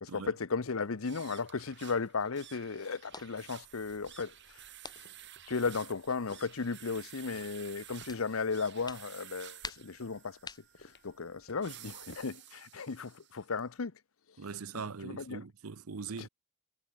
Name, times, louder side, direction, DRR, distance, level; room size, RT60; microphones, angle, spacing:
voice 1, 0.0-4.7 5.5-13.9 15.0-15.4 16.2-16.3, left 4 dB, 70° left, 0.8 m, -35 dB
sound 1, 0.5-12.2, left 3 dB, 55° left, 2.4 m, -60 dB
sound 2, 1.0-13.5, right 12 dB, 55° right, 3.1 m, -53 dB
sound 3, 2.9-12.3, left 4 dB, 20° left, 2.3 m, -53 dB
voice 2, 14.4-16.3, right 5 dB, 80° right, 0.8 m, -41 dB
head